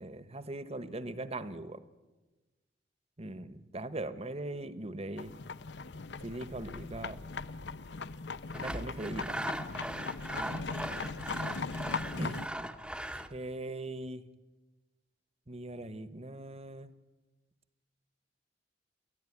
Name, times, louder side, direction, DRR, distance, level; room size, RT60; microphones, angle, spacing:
voice 1, 0.0-1.8 3.2-5.3 6.2-7.2 8.6-9.4 10.3-10.7 12.2-12.7 13.1-14.2 15.5-16.9, right 2 dB, 35° right, 13 dB, 1.2 m, -40 dB
sound 1, 5.2-12.5, left 4 dB, 70° left, 0.7 m, -39 dB
Sawing, 8.5-13.4, right 1 dB, 5° right, 1.0 m, -39 dB
29.0 x 14.0 x 10.0 m, 1.2 s
head